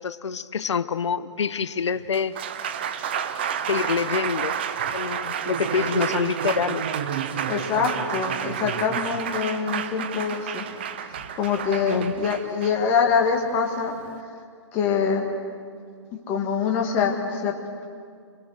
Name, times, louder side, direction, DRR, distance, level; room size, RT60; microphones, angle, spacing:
voice 1, 0.0-2.4 3.6-4.5 4.9-6.9 11.9-12.1, left 6 dB, 70° left, 15 dB, 0.9 m, -26 dB
Applause, 2.0-14.2, right 8 dB, 20° right, 0.6 m, -30 dB
voice 2, 7.5-10.7 11.1-13.9 14.7-15.2 16.3-17.5, left 6 dB, 15° left, 1 dB, 1.7 m, -24 dB
26.0 x 20.0 x 6.5 m, 2.2 s
hypercardioid pair, 175°, 15 cm